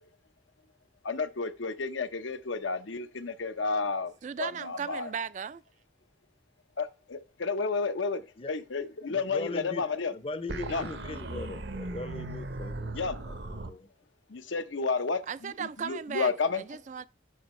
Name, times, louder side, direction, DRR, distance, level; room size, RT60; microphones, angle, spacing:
voice 1, 1.0-4.1 4.4-5.1 6.8-10.1 10.7-10.9 12.9-13.2 14.3-16.6, left 4 dB, 80° left, 0.8 m, -31 dB
voice 2, 4.2-5.6 15.3-17.0, right 6 dB, 40° right, 0.3 m, -36 dB
voice 3, 9.1-9.8 10.1-13.0 13.3-13.9, left 3 dB, 30° left, 0.6 m, -39 dB
sound 1, 10.5-13.7, right 2 dB, 65° right, 0.9 m, -37 dB
9.3 x 6.0 x 3.1 m
head